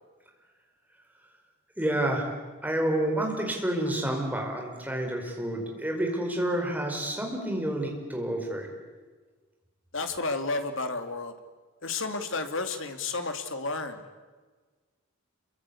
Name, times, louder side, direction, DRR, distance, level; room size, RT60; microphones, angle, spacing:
voice 1, 1.8-2.3 2.6-8.7, right 1 dB, 5° right, 1 dB, 4.6 m, -29 dB
voice 2, 9.9-11.3 11.8-14.0, left 3 dB, 60° left, 7 dB, 2.5 m, -31 dB
27.0 x 23.5 x 8.6 m, 1.4 s
head